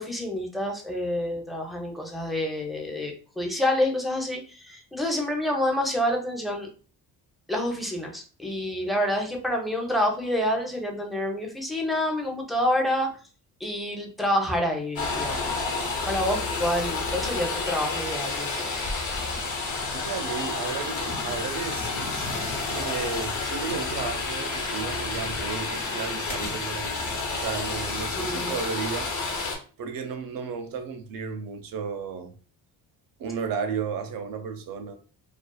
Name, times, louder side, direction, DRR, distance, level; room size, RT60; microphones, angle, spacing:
voice 1, 0.0-6.7 7.5-13.1 13.6-15.6 16.1-18.7 28.1-28.5, left 1 dB, ahead, 0.6 m, -28 dB
sound 1, 15.0-29.6, left 3 dB, 50° left, 1.0 m, -30 dB
voice 2, 19.9-22.3 22.8-29.1 29.8-32.3 33.2-35.0, right 6 dB, 60° right, 0.6 m, -34 dB
2.4 x 2.3 x 2.3 m
cardioid pair, 85°, 38 cm